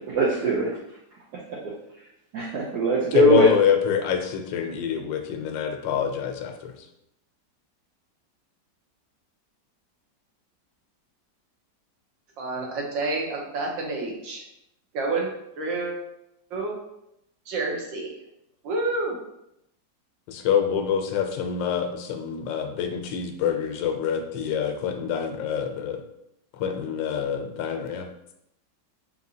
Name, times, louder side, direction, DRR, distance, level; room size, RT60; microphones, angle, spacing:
voice 1, 0.1-0.8 1.5-1.7 2.3-3.5, equal, 65° right, -5 dB, 1.2 m, -21 dB
voice 2, 3.1-6.7 20.3-26.0 26.5-28.1, left 8 dB, 85° left, 4 dB, 1.3 m, -26 dB
voice 3, 12.4-14.4 14.9-15.3 15.6-15.9 16.5-16.8 17.5-18.1 18.6-19.2, right 3 dB, 85° right, -1 dB, 1.6 m, -28 dB
5.1 x 2.9 x 2.7 m, 0.81 s
omnidirectional pair, 2.0 m